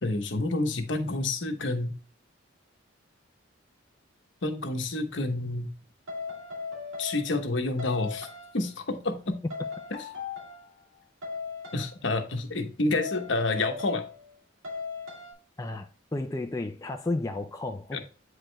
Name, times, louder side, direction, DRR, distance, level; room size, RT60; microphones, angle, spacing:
voice 1, 0.0-1.9 4.4-5.7 7.0-8.3 8.5-9.4 11.7-14.0 17.9-18.0, left 2 dB, 65° left, 1.0 m, -29 dB
sound 1, 6.1-7.5 7.8-8.7 9.5-10.8 11.2-12.0 12.9-14.3 14.6-15.3, left 4 dB, 85° right, 2.4 m, -37 dB
voice 2, 15.6-18.0, left 2 dB, 15° left, 0.3 m, -33 dB
8.7 x 4.8 x 2.2 m
head